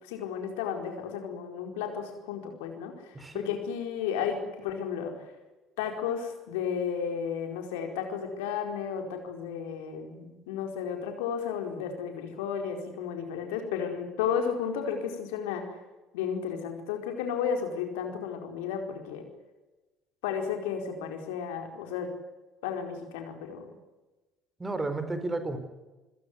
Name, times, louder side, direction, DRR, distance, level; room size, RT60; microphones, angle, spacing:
voice 1, 0.0-5.3 5.8-15.8 16.1-19.3 20.2-22.1 22.6-23.7, left 7 dB, 70° left, 4 dB, 4.6 m, -33 dB
voice 2, 3.1-3.5 24.6-25.6, right 2 dB, 20° right, 10 dB, 4.3 m, -32 dB
27.0 x 16.0 x 9.7 m, 1.1 s
figure-of-eight pair, 55°, 0 cm